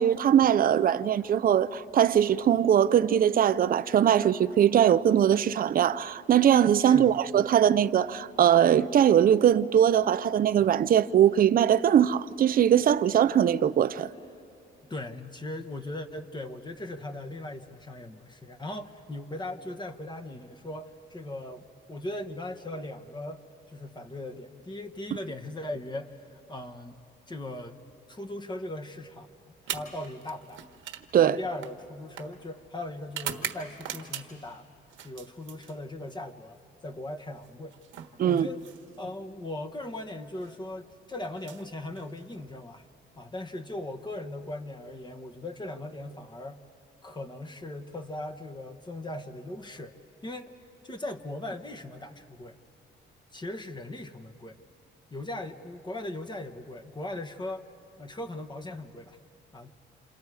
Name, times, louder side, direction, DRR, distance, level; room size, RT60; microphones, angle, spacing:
voice 1, 0.0-14.1 31.1-31.4 38.2-38.5, right 9 dB, 45° right, 0.5 m, -21 dB
voice 2, 6.8-7.2 14.9-23.4 23.7-26.9 27.3-27.8 28.1-30.6 31.2-34.7 35.0-37.8 38.2-38.6 39.0-42.8 43.2-46.6 47.0-49.9 50.2-50.5 50.8-52.6 53.3-54.6 55.1-57.7 58.0-59.2 59.5-59.7, left 1 dB, 20° left, 1.1 m, -39 dB
sound 1, 29.6-34.5 34.9-36.1 37.4-39.2 40.3-40.5 41.3-42.5, right 10 dB, 80° right, 1.4 m, -41 dB
28.0 x 27.5 x 4.8 m
cardioid pair, 90°, 20 cm